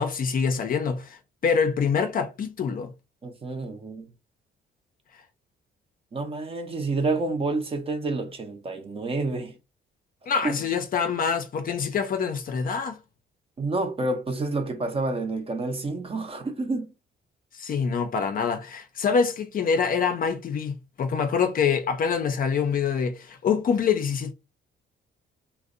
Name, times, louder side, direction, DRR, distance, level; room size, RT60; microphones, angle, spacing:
voice 1, 0.0-2.9 10.3-13.0 17.5-24.3, left 6 dB, 45° left, 0.5 m, -25 dB
voice 2, 3.2-4.1 6.1-9.6 10.4-10.5 13.6-16.9, right 3 dB, 30° right, 0.5 m, -29 dB
2.5 x 2.0 x 2.4 m
cardioid pair, 90°, 20 cm